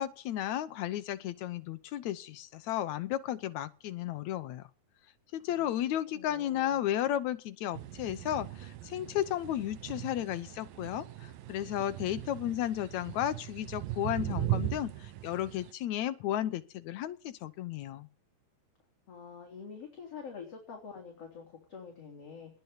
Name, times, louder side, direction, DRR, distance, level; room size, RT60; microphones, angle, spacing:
voice 1, 0.0-4.7 5.3-18.1, left 12 dB, 70° left, 1.8 m, -34 dB
voice 2, 6.1-6.8 19.1-22.6, left 6 dB, 40° left, 4.2 m, -46 dB
sound 1, 7.7-15.7, right 14 dB, 70° right, 2.8 m, -39 dB
20.0 x 7.0 x 9.5 m
omnidirectional pair, 4.3 m